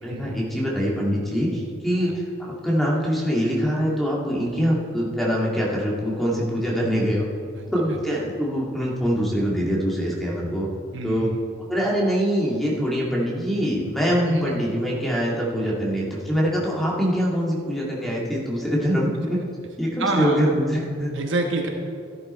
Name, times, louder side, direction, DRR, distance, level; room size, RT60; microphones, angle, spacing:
voice 1, 0.0-2.1 2.4-7.3 7.7-10.7 11.0-11.3 11.7-19.4 19.8-21.1, equal, ahead, -4 dB, 2.1 m, -24 dB
voice 2, 7.5-8.0 10.9-11.2 14.2-14.5 20.0-20.4 21.1-21.7, right 2 dB, 65° right, 3 dB, 1.2 m, -27 dB
13.0 x 11.0 x 4.4 m, 2.2 s
head